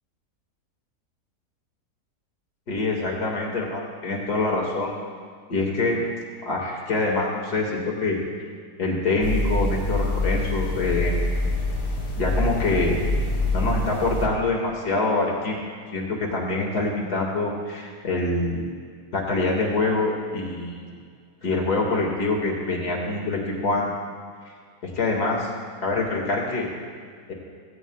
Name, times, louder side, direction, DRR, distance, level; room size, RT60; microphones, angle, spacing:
voice 1, 2.7-4.9 5.5-6.0 6.4-8.2 8.8-11.2 12.2-13.0 13.5-15.6 15.9-18.6 19.1-21.0 21.4-23.9 24.8-25.5 25.8-26.7 27.3-27.4, left 3 dB, 70° left, -1 dB, 2.5 m, -25 dB
sound 1, 9.2-14.3, left 1 dB, 45° left, 2.1 m, -25 dB
17.0 x 16.0 x 2.3 m, 2.1 s
omnidirectional pair, 1.7 m